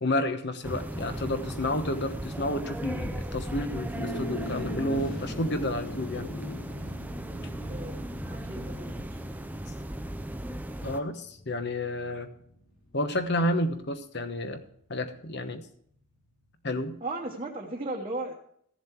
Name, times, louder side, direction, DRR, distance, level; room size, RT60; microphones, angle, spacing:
voice 1, 0.0-6.3 10.8-12.3 12.9-14.6 14.9-15.7 16.6-17.0, left 1 dB, 50° left, 9 dB, 1.0 m, -30 dB
sound 1, 0.6-11.0, right 1 dB, 5° right, 0.4 m, -37 dB
sound 2, 3.9-13.4, equal, 90° left, 2.7 m, -41 dB
voice 2, 7.6-9.2 17.0-18.3, right 2 dB, 25° right, -3 dB, 1.1 m, -36 dB
15.0 x 7.3 x 4.6 m, 0.66 s
head